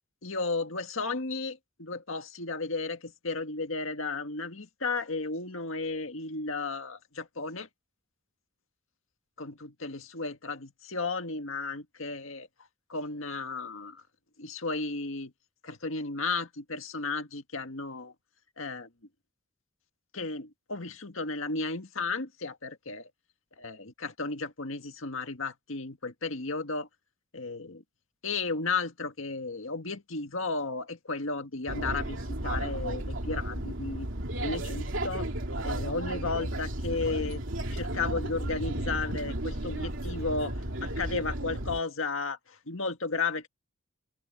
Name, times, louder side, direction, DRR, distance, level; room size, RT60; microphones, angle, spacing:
voice 1, 0.2-7.7 9.4-12.5 12.9-14.0 14.4-15.3 15.6-18.1 18.6-18.9 20.1-23.1 23.6-26.9 27.3-27.8 28.2-34.1 34.4-35.3 35.6-37.4 37.7-43.5, left 3 dB, 70° left, 2.0 m, -34 dB
sound 1, 31.7-41.8, right 1 dB, 65° right, 3.0 m, -33 dB
open air
head